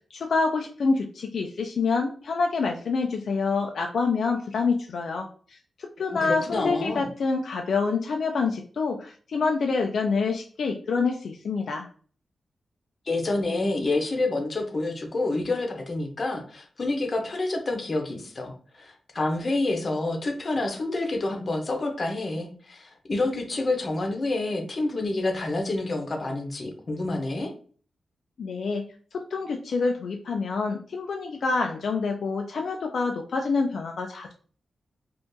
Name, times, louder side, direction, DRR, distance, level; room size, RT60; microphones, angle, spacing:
voice 1, 0.1-11.9 28.4-28.8 29.1-34.3, left 4 dB, 70° left, 3 dB, 0.3 m, -27 dB
voice 2, 6.0-7.1 13.1-27.5, left 2 dB, 40° left, 3 dB, 0.7 m, -28 dB
3.6 x 2.4 x 2.6 m, 0.43 s
wide cardioid pair, 130°, 0 cm